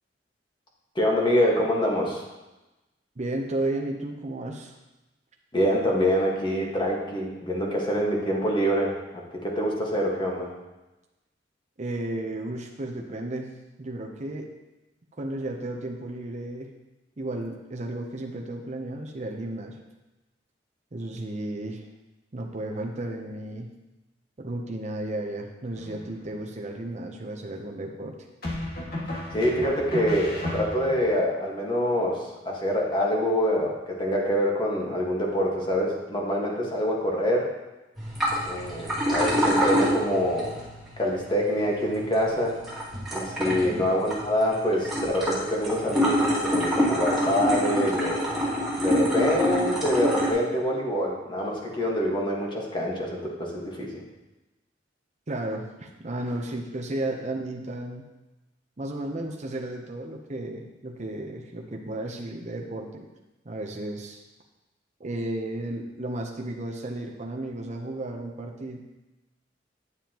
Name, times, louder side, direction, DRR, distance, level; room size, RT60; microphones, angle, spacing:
voice 1, 0.9-2.2 5.5-10.5 29.3-37.5 38.4-40.5 41.0-42.6 43.1-48.4 48.8-54.0, equal, 25° left, -2 dB, 1.5 m, -25 dB
voice 2, 3.2-4.7 11.8-13.5 13.8-14.5 15.2-16.7 17.2-19.8 20.9-21.9 22.3-23.7 24.4-28.1 43.5-43.8 55.3-58.1 58.8-63.1 63.4-64.2 65.0-68.8, right 1 dB, 40° right, 1 dB, 0.7 m, -33 dB
sound 1, 25.8-26.4 28.4-31.1, left 1 dB, 55° left, 2.0 m, -33 dB
sound 2, 38.0-50.3, equal, ahead, 2.2 m, -27 dB
9.6 x 7.3 x 2.9 m, 1.0 s
head